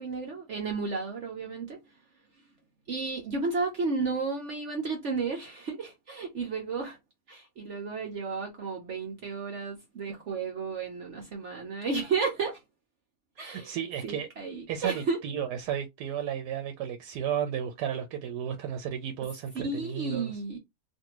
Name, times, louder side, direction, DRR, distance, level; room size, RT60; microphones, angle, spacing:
voice 1, 0.0-1.8 2.9-7.0 7.3-12.6 13.4-13.7 14.0-15.2 19.5-20.6, right 4 dB, 55° right, 0.9 m, -33 dB
voice 2, 13.4-14.3 14.7-20.3, right 9 dB, 85° right, 1.2 m, -33 dB
2.6 x 2.6 x 2.9 m
omnidirectional pair, 1.7 m